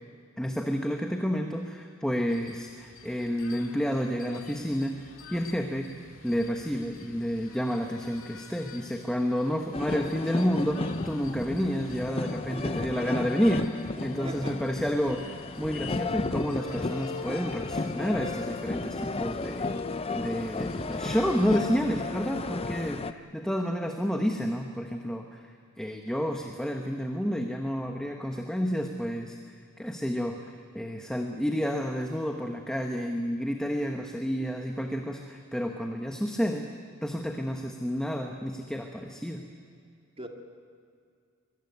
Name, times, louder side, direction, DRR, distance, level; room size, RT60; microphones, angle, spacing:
voice 1, 0.4-5.9 6.2-19.7 20.1-25.4 25.8-29.4 29.8-36.7 37.0-39.4, equal, 5° left, 3 dB, 1.3 m, -30 dB
sound 1, 2.3-21.6, left 4 dB, 75° left, 2.3 m, -48 dB
sound 2, 9.7-23.1, left 3 dB, 30° left, 0.7 m, -33 dB
voice 2, 12.5-13.2 14.2-14.6 20.5-21.2 40.2-40.3, right 1 dB, 30° right, 3 dB, 2.4 m, -42 dB
23.5 x 22.0 x 9.5 m, 2.3 s
head